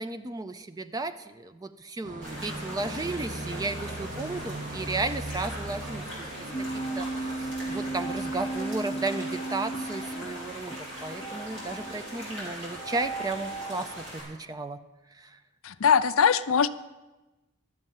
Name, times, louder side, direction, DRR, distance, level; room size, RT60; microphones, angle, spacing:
voice 1, 0.0-6.3 6.7-14.8 15.1-15.4, right 3 dB, 15° right, 11 dB, 0.3 m, -34 dB
sound 1, 2.0-8.7, right 2 dB, 35° right, 0.9 m, -39 dB
sound 2, 2.2-14.2, right 1 dB, 50° right, 4.5 m, -41 dB
sound 3, 6.5-14.0, right 2 dB, 25° left, 0.8 m, -36 dB
voice 2, 15.6-16.7, left 6 dB, 65° left, 14 dB, 0.4 m, -21 dB
12.0 x 7.7 x 7.2 m, 1.1 s
head